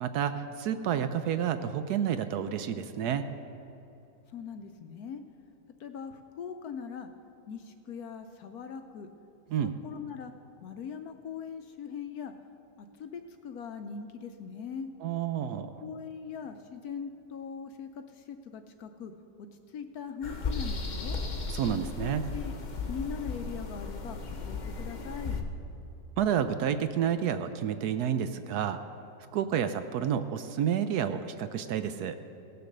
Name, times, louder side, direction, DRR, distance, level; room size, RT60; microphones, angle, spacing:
voice 1, 0.0-3.3 9.5-9.8 15.0-15.7 21.5-22.2 26.2-28.8 29.3-32.2, right 9 dB, 70° right, 10 dB, 1.0 m, -30 dB
voice 2, 4.3-5.2 5.8-7.1 7.5-9.1 9.6-10.3 10.6-12.3 12.8-14.9 15.8-19.1 19.7-21.2 22.0-22.5 22.9-24.2 24.5-25.4, left 6 dB, 70° left, 8 dB, 1.0 m, -41 dB
sound 1, 20.2-25.4, left 4 dB, 40° left, 0.6 m, -35 dB
17.5 x 6.8 x 6.5 m, 2.9 s
omnidirectional pair, 1.9 m